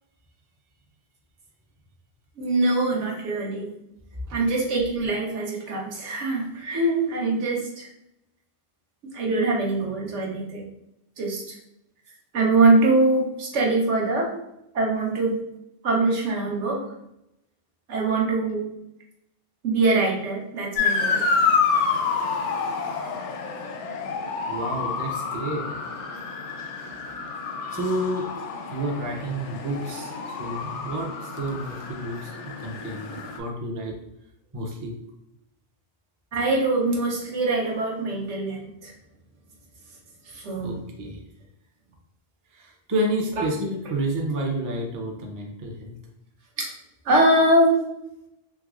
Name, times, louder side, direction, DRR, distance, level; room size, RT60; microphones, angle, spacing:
voice 1, 2.4-3.7 4.3-7.9 9.1-10.6 11.2-11.6 12.3-14.3 14.7-15.4 15.8-16.9 17.9-18.7 19.6-21.2 36.3-38.9 40.3-40.8 44.4-44.5 46.6-46.7 47.0-47.7, right 2 dB, 85° right, -1 dB, 1.2 m, -23 dB
Motor vehicle (road) / Siren, 20.8-33.4, left 5 dB, 80° left, 0.9 m, -28 dB
voice 2, 24.4-25.8 26.8-26.9 27.7-28.3 28.7-34.0 34.5-34.9 40.6-41.2 42.5-45.9, right 1 dB, 30° right, 1 dB, 0.3 m, -30 dB
3.4 x 3.0 x 2.4 m, 0.82 s
omnidirectional pair, 1.2 m